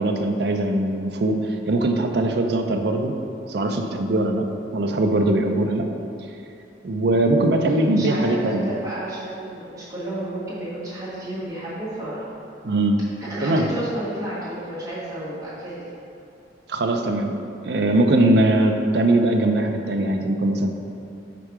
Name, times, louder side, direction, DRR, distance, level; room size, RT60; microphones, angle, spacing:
voice 1, 0.0-1.4 1.7-3.1 3.5-4.4 4.7-5.9 6.8-8.7 12.6-13.0 13.4-13.7 16.7-17.3 17.6-20.7, right 1 dB, 60° right, 4 dB, 0.5 m, -21 dB
voice 2, 8.0-12.2 13.3-15.7, right 1 dB, 20° right, -10 dB, 1.5 m, -31 dB
5.0 x 4.5 x 5.9 m, 2.6 s
head